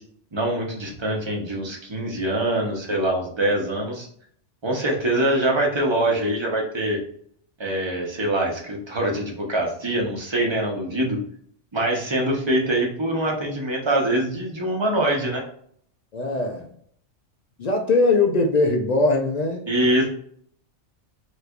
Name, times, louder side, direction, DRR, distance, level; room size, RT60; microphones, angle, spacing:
voice 1, 0.3-4.1 4.6-7.0 7.6-11.2 11.7-15.4 19.7-20.1, right 1 dB, 25° right, 0 dB, 0.7 m, -24 dB
voice 2, 16.1-16.7 17.6-19.6, left 3 dB, 65° left, 2 dB, 0.4 m, -21 dB
3.2 x 3.1 x 2.4 m, 0.62 s
omnidirectional pair, 1.3 m